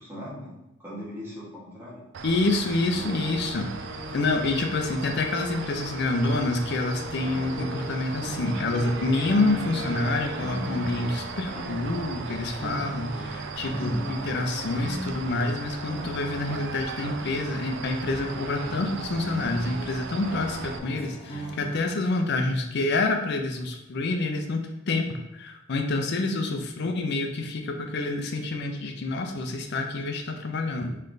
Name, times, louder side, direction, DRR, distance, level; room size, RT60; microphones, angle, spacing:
voice 1, 0.0-2.0 13.8-14.1, equal, 10° right, -7 dB, 1.2 m, -40 dB
sound 1, 2.1-20.8, right 5 dB, 60° right, 0.4 m, -38 dB
voice 2, 2.2-3.7 4.1-31.0, left 2 dB, 60° left, 4 dB, 0.5 m, -27 dB
Musical instrument, 2.9-11.4, left 2 dB, 85° left, 1.3 m, -40 dB
sound 2, 7.2-21.8, right 1 dB, 30° left, 0.9 m, -38 dB
3.3 x 3.2 x 3.9 m, 0.90 s
head